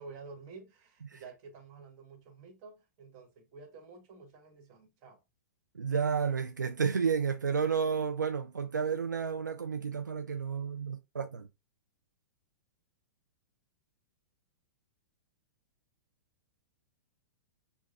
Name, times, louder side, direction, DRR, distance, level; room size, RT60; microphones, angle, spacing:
voice 1, 0.0-5.2, right 4 dB, 35° right, 1.4 m, -50 dB
voice 2, 5.7-11.5, right 6 dB, 75° right, 0.4 m, -31 dB
6.5 x 2.3 x 2.4 m
figure-of-eight pair, 105°, 10 cm